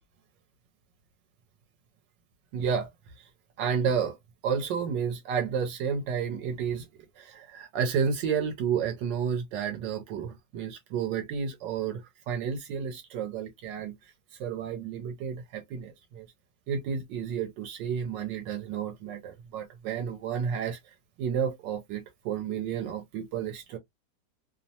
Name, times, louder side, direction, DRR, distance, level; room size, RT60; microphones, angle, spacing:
voice 1, 2.5-2.9 3.2-3.3 3.6-4.2 4.4-6.9 7.2-14.1 14.4-16.3 16.7-23.8, right 7 dB, 85° right, 1.3 m, -31 dB
3.0 x 2.0 x 2.6 m
omnidirectional pair, 1.9 m